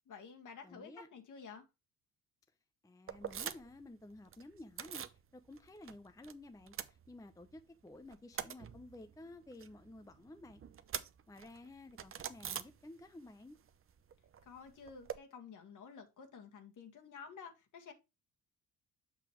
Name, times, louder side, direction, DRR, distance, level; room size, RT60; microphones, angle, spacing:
voice 1, 0.1-1.7 14.4-17.9, left 5 dB, 55° left, 1.8 m, -52 dB
voice 2, 0.6-1.1 2.8-5.0 5.3-10.6 11.3-13.6, left 2 dB, 10° left, 0.7 m, -53 dB
sound 1, 3.1-5.2 5.5-6.3 6.6-7.6 7.9-13.3 13.6-15.2, right 8 dB, 35° right, 0.7 m, -45 dB
7.1 x 5.8 x 3.1 m
supercardioid pair, 65°, 37 cm